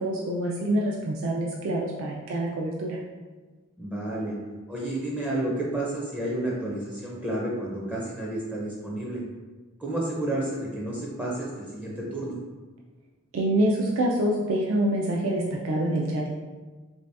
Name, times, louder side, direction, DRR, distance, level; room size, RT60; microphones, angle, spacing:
voice 1, 0.0-3.0 13.3-16.3, right 1 dB, 65° right, -2 dB, 0.4 m, -26 dB
voice 2, 3.8-4.4 4.7-9.2 9.8-12.3, right 1 dB, 5° right, -4 dB, 0.5 m, -31 dB
3.3 x 2.7 x 3.3 m, 1.3 s
head